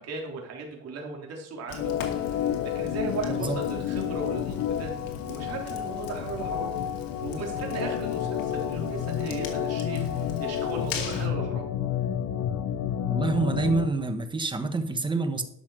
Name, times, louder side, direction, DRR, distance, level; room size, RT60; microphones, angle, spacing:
voice 1, 0.0-1.9 2.2-4.9 5.3-6.7 7.2-11.6, right 3 dB, 50° right, 0 dB, 3.4 m, -37 dB
Fire, 1.7-11.3, left 5 dB, 85° left, 2.3 m, -40 dB
Organ, 1.8-13.9, left 9 dB, 60° left, 0.8 m, -30 dB
voice 2, 13.1-15.4, right 3 dB, 15° right, 8 dB, 1.1 m, -27 dB
12.0 x 5.7 x 6.3 m, 0.76 s
cardioid pair, 150°, 33 cm